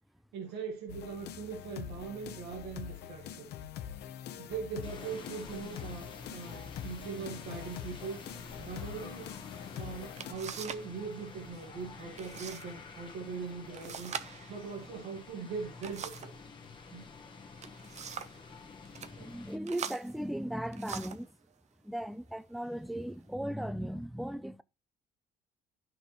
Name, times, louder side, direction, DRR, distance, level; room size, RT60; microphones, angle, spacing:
voice 1, 0.3-3.5 4.4-8.2 8.6-9.3 9.7-14.2 14.5-16.3 16.9-17.1 19.2-19.3, right 5 dB, 85° right, 1.8 m, -41 dB
sound 1, 0.9-10.3, left 10 dB, 75° left, 1.0 m, -44 dB
sound 2, 4.8-19.6, left 4 dB, 30° left, 1.6 m, -49 dB
sound 3, 9.7-9.8 10.2-10.9 11.2-11.7 12.2-12.7 13.0-13.1 13.7-16.4 17.4-18.4 18.9-19.1 19.7-21.3 22.1-22.2 22.8-23.3, right 7 dB, 40° right, 0.9 m, -43 dB
voice 2, 18.6-21.4 21.8-24.6, right 1 dB, ahead, 0.5 m, -37 dB
11.0 x 6.1 x 3.1 m
cardioid pair, 110°, 17 cm